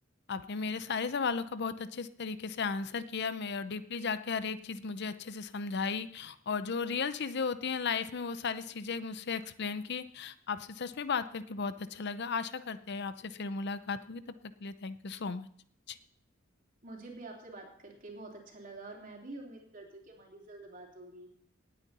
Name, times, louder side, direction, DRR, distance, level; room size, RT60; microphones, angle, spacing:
voice 1, 0.3-14.2 14.6-15.5 15.9-16.0, left 5 dB, 60° left, 13 dB, 0.6 m, -35 dB
voice 2, 16.8-21.3, right 2 dB, 45° right, 0 dB, 3.2 m, -47 dB
18.5 x 9.1 x 4.2 m, 0.66 s
head